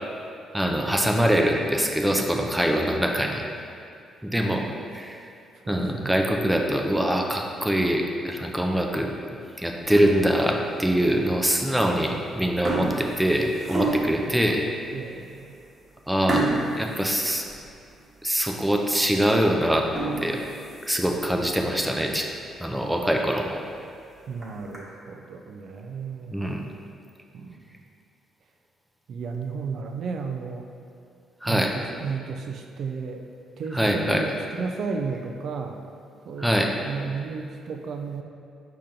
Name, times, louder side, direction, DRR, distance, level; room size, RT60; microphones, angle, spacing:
voice 1, 0.5-3.4 4.2-5.2 5.7-9.1 9.6-14.6 16.1-16.5 16.8-17.4 18.2-19.9 20.2-20.4 20.9-22.3 22.6-23.6 26.3-26.6 31.4-31.7 33.7-34.3 36.4-36.7, equal, 5° right, 1 dB, 0.4 m, -23 dB
voice 2, 5.7-6.1 14.9-15.6 24.3-26.5 27.3-27.6 29.1-30.7 31.4-33.2 33.6-35.8 36.3-36.5 36.8-38.2, right 5 dB, 65° right, 4 dB, 0.3 m, -33 dB
sound 1, 9.8-10.4 10.9-11.0 11.9-12.1 12.4-14.3 14.9-15.0 15.3-15.5 16.3-18.0 18.4-18.5 19.0-19.1 19.7-21.4 21.8-21.9 22.3-22.4 22.8-22.9 23.2-23.3 24.2-24.8, right 2 dB, 35° right, 1.0 m, -30 dB
5.0 x 2.9 x 3.7 m, 2.4 s
cardioid pair, 90°, 0 cm